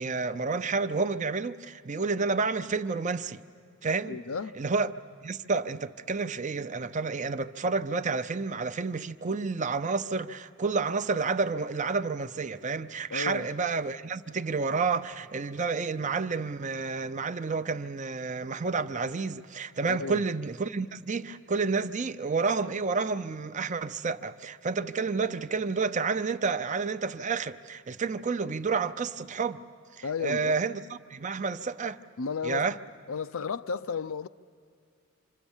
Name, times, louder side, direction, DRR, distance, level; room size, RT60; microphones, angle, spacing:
voice 1, 0.0-3.4 3.8-4.2 4.6-29.6 29.9-30.8 31.1-32.0 32.4-32.8, right 4 dB, 35° right, 0.6 m, -30 dB
voice 2, 4.1-4.6 13.1-13.5 19.9-20.2 30.0-30.6 32.2-32.7 33.1-34.3, left 5 dB, 80° left, 0.5 m, -33 dB
26.5 x 26.5 x 7.2 m
head